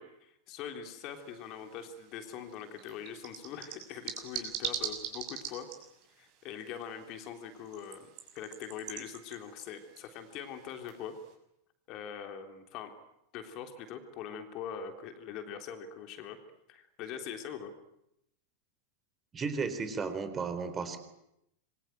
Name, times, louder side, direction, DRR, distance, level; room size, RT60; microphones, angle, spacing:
voice 1, 0.0-5.7 6.2-8.1 8.4-11.1 11.9-12.9 13.3-16.4 16.7-17.7, left 8 dB, 40° left, 6 dB, 3.5 m, -42 dB
sound 1, 1.0-11.3, right 9 dB, 45° right, 6.8 m, -44 dB
voice 2, 19.3-21.0, right 5 dB, 20° right, 9 dB, 4.0 m, -34 dB
27.0 x 24.0 x 9.1 m, 0.81 s
figure-of-eight pair, 90°, 0 cm